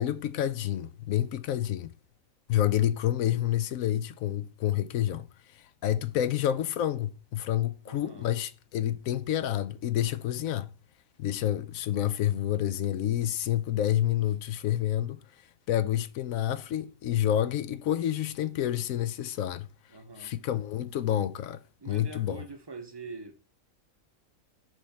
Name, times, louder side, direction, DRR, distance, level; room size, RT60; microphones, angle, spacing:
voice 1, 0.0-1.9 2.5-5.3 5.5-10.7 11.2-15.2 15.7-19.7 20.2-22.4, left 11 dB, 80° left, 1.0 m, -29 dB
voice 2, 7.9-8.3 19.9-20.3 21.8-23.4, right 3 dB, 25° right, 0.7 m, -44 dB
6.2 x 3.2 x 5.6 m
omnidirectional pair, 1.5 m